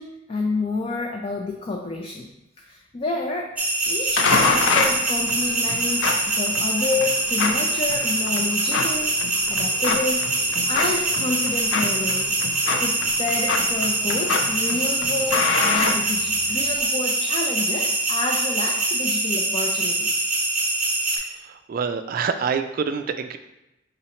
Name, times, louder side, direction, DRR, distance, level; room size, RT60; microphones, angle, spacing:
voice 1, 0.0-2.3 2.6-3.5 3.9-9.1 9.5-12.4 12.8-20.3, left 3 dB, 30° left, 0 dB, 0.4 m, -29 dB
sound 1, 3.6-21.2, right 2 dB, 5° right, 0.8 m, -24 dB
sound 2, 4.2-16.7, left 4 dB, 90° left, 0.4 m, -27 dB
voice 2, 21.1-23.4, right 6 dB, 50° right, 9 dB, 0.3 m, -27 dB
3.8 x 2.9 x 4.3 m, 0.93 s
head